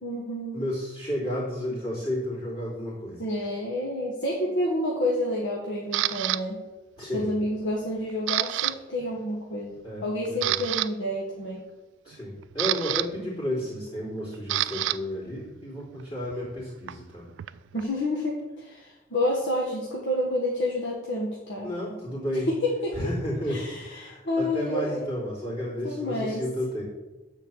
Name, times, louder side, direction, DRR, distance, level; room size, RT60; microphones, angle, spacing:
voice 1, 0.0-0.6 3.2-6.6 7.1-11.6 17.7-21.7 22.5-23.0 23.5-25.0 25.8-26.4, left 1 dB, 80° left, -2 dB, 1.5 m, -29 dB
voice 2, 0.5-3.2 7.0-7.3 9.8-10.6 12.0-17.3 21.6-22.5 22.9-26.8, equal, 25° left, -12 dB, 3.5 m, -32 dB
Camera, 5.9-6.4 7.0-7.3 7.7-8.7 9.0-9.2 9.8-9.9 10.3-10.9 12.1-15.0 15.3-17.8, right 14 dB, 85° right, 0.3 m, -29 dB
9.5 x 4.5 x 7.2 m, 1.1 s
head